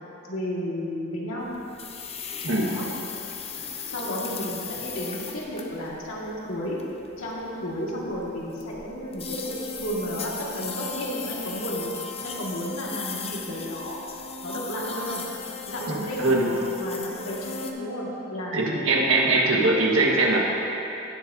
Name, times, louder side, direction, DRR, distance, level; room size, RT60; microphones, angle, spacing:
voice 1, 0.3-1.5 2.6-2.8 3.9-6.8 7.2-14.0 14.4-15.3 15.7-18.6, equal, 80° left, -5 dB, 2.0 m, -32 dB
sound 1, 1.4-17.7, left 5 dB, 30° left, 0.6 m, -37 dB
voice 2, 18.5-20.4, right 2 dB, 70° right, -2 dB, 1.5 m, -21 dB
17.5 x 7.2 x 2.8 m, 3.0 s
head